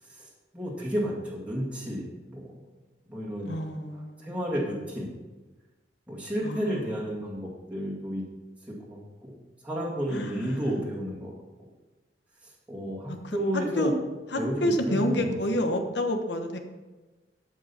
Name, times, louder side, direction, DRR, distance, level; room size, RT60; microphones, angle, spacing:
voice 1, 0.0-2.5 3.1-3.6 3.9-5.2 6.1-8.2 8.6-9.4 9.6-11.3 12.4-13.9 14.4-15.4, equal, 10° right, -6 dB, 2.0 m, -32 dB
voice 2, 3.4-4.3 6.4-6.6 10.1-10.6 13.1-13.4 13.8-13.9 14.3-16.6, left 1 dB, 75° left, 5 dB, 1.2 m, -28 dB
12.5 x 5.5 x 5.5 m, 1.2 s
head